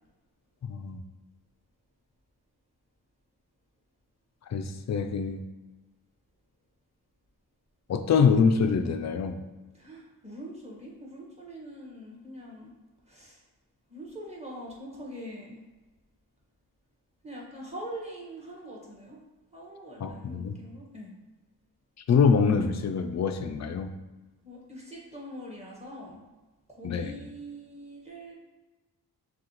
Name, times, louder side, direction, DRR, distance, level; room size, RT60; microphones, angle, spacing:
voice 1, 0.6-1.0 4.5-5.4 7.9-9.4 20.0-20.6 22.1-23.9 26.8-27.2, left 5 dB, 50° left, 7 dB, 0.5 m, -25 dB
voice 2, 9.7-12.7 13.1-13.4 13.9-15.6 17.2-19.2 19.5-21.1 24.4-26.2 26.7-28.3, equal, 15° right, -4 dB, 1.5 m, -43 dB
6.3 x 2.4 x 3.0 m, 1.2 s
cardioid pair, 85°, 37 cm